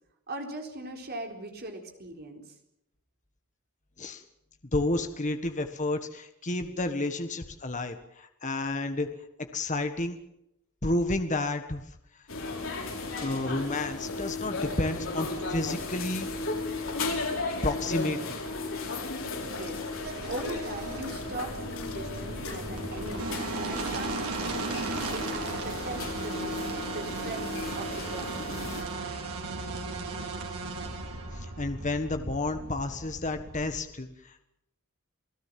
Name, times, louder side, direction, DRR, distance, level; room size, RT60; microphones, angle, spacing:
voice 1, 0.3-2.6 19.5-24.8 25.1-28.4, right 2 dB, 45° right, 3 dB, 4.1 m, -40 dB
voice 2, 4.7-9.1 9.4-10.2 10.8-11.8 13.0-16.3 16.8-16.9 17.6-18.4 31.3-34.4, left 2 dB, 35° left, 7 dB, 1.5 m, -31 dB
sound 1, 12.3-28.8, left 3 dB, 60° left, 6.3 m, -35 dB
sound 2, 19.5-26.4, left 4 dB, 90° left, 8.0 m, -50 dB
sound 3, 20.0-33.7, right 3 dB, 85° right, 5.2 m, -36 dB
28.5 x 17.5 x 7.6 m, 0.82 s
head